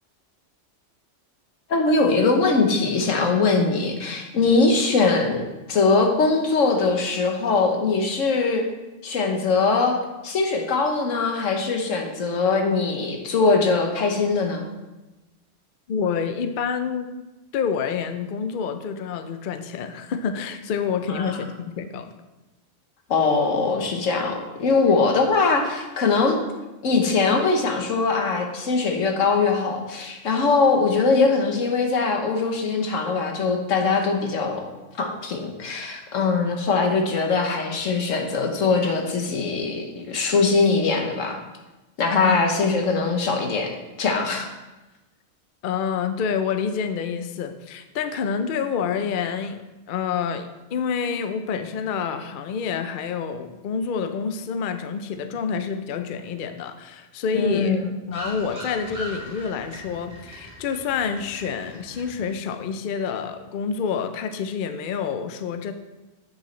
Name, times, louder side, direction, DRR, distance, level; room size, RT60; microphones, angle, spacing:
voice 1, 1.7-5.4 5.7-8.6 9.0-10.0 10.2-14.6 21.1-21.4 23.1-26.4 26.8-34.7 35.0-41.4 42.0-44.5 57.3-57.8, left 4 dB, 90° left, 3 dB, 1.4 m, -21 dB
voice 2, 15.9-17.1 17.5-22.1 42.2-42.4 45.6-57.8 58.1-65.7, left 6 dB, 55° left, 9 dB, 0.6 m, -28 dB
sound 1, 58.1-62.5, equal, 5° right, 2.4 m, -40 dB
8.1 x 6.6 x 3.2 m, 1.1 s
omnidirectional pair, 1.3 m